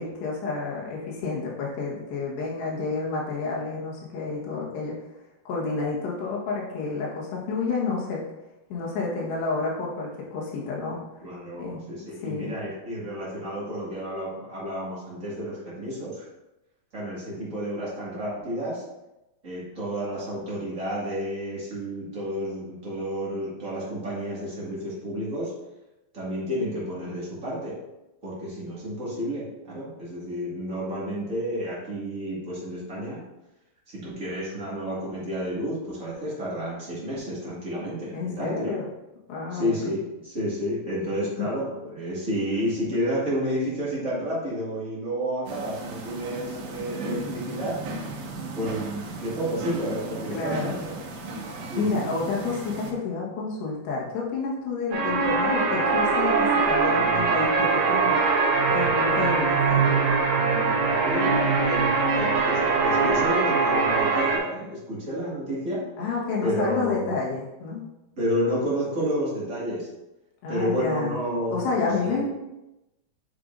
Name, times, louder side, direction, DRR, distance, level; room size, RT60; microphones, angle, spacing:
voice 1, 0.0-5.0 5.5-8.2 8.7-11.0 11.6-11.8 12.2-12.5 38.1-38.8 39.3-39.9 41.4-41.5 50.3-50.8 51.8-58.2 58.7-59.9 66.0-67.8 70.4-71.2 71.5-72.3, left 4 dB, 80° left, -4 dB, 3.5 m, -29 dB
voice 2, 11.2-16.3 16.9-18.8 19.4-25.5 26.1-27.8 28.2-33.2 33.9-38.7 39.5-47.8 48.5-50.9 51.7-52.1 61.0-65.8 66.4-67.2 68.2-69.9 70.5-72.2, equal, 40° right, -7 dB, 1.1 m, -30 dB
sound 1, 45.5-52.9, right 3 dB, 85° right, 3.1 m, -36 dB
sound 2, 54.9-64.4, right 4 dB, 70° right, 2.5 m, -22 dB
9.4 x 5.3 x 2.6 m, 0.95 s
omnidirectional pair, 4.9 m